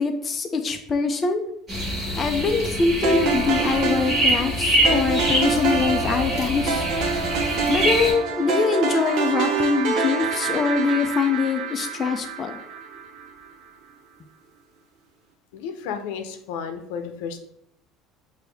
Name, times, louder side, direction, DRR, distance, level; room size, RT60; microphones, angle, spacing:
voice 1, 0.0-1.4 2.2-6.9 7.7-12.6, left 4 dB, 20° left, 5 dB, 0.4 m, -23 dB
sound 1, 1.7-8.1, right 1 dB, 25° right, 1.5 m, -25 dB
sound 2, 3.0-13.3, right 4 dB, 50° right, 0.7 m, -26 dB
voice 2, 15.5-17.4, left 6 dB, 85° left, 7 dB, 0.6 m, -32 dB
6.0 x 2.6 x 3.3 m, 0.72 s
cardioid pair, 170°, 0 cm